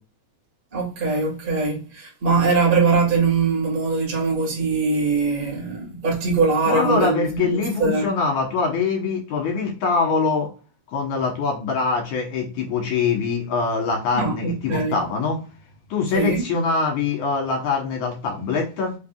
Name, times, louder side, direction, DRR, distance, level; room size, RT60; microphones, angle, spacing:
voice 1, 0.7-8.1 14.1-15.0 16.1-16.4, right 4 dB, 45° right, 0.6 m, -22 dB
voice 2, 6.7-10.5 10.9-15.4 15.9-19.0, left 4 dB, 65° left, 2.3 m, -23 dB
5.4 x 3.4 x 2.3 m
omnidirectional pair, 4.2 m